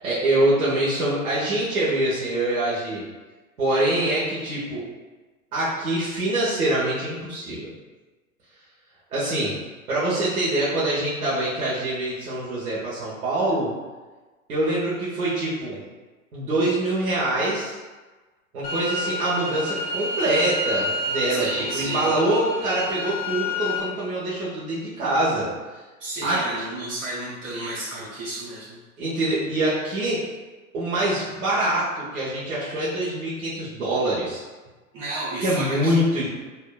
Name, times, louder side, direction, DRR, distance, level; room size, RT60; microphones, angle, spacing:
voice 1, 0.0-3.0 3.6-4.9 5.5-7.7 9.1-9.6 9.9-13.7 14.5-15.8 16.3-17.8 18.5-25.5 26.2-26.4 29.0-30.2 30.7-34.4 35.4-36.3, right 1 dB, 85° right, -9 dB, 1.3 m, -24 dB
sound 1, 18.6-23.8, left 1 dB, 45° left, 0.9 m, -29 dB
voice 2, 21.3-22.1 26.0-28.8 34.9-36.0, right 2 dB, 60° right, -9 dB, 1.5 m, -32 dB
5.6 x 2.9 x 2.3 m, 1.3 s
hypercardioid pair, 100°, 43 cm